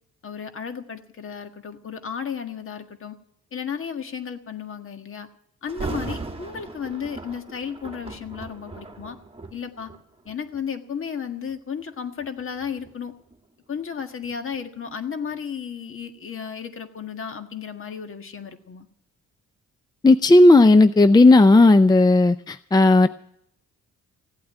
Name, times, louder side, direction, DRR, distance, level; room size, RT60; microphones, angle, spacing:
voice 1, 0.2-3.2 3.5-5.3 5.6-9.2 9.5-9.9 10.2-13.1 13.7-18.9, left 7 dB, 45° left, 7 dB, 1.7 m, -33 dB
Thunder, 5.7-10.7 11.3-11.5 12.2-15.0 15.3-15.4, right 3 dB, 20° right, 1.7 m, -38 dB
voice 2, 20.0-23.1, left 2 dB, 15° left, 12 dB, 0.5 m, -13 dB
15.5 x 8.7 x 9.0 m, 0.71 s
cardioid pair, 90°, 30 cm